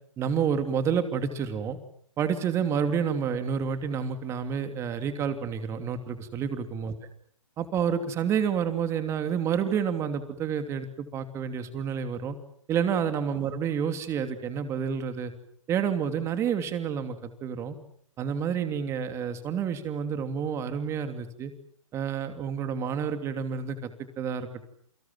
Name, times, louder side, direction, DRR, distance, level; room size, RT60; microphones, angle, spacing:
voice 1, 0.2-1.8 2.2-6.9 7.6-12.4 12.7-15.3 15.7-17.8 18.2-21.5 21.9-24.7, right 7 dB, 15° right, 8 dB, 3.0 m, -29 dB
29.0 x 25.0 x 7.6 m, 0.63 s
hypercardioid pair, 145°, 17 cm